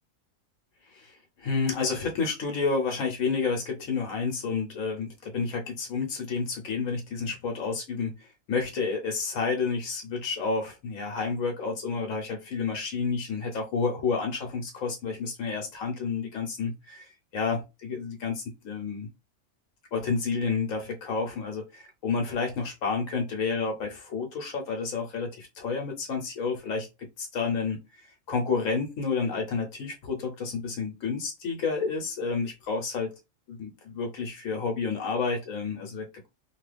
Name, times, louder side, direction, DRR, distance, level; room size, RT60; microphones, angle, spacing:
voice 1, 0.9-8.2 8.5-17.1 17.3-19.1 19.9-26.9 27.2-27.8 28.3-33.1 33.5-36.3, left 4 dB, 80° left, 1.1 m, -30 dB
2.9 x 2.3 x 3.2 m
omnidirectional pair, 1.4 m